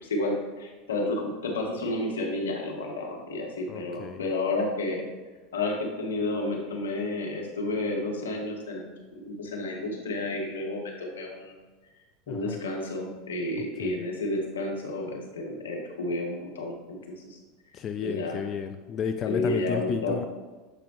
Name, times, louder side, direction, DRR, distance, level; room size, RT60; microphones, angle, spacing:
voice 1, 0.0-5.0 5.5-8.9 9.2-11.5 12.3-17.4 18.0-18.4 19.3-20.1, left 2 dB, 85° left, 0 dB, 1.3 m, -31 dB
voice 2, 3.7-4.2 12.3-12.6 13.6-14.0 17.7-20.3, left 7 dB, 40° left, 7 dB, 0.3 m, -32 dB
7.6 x 4.8 x 3.1 m, 1.3 s
hypercardioid pair, 85°, 0 cm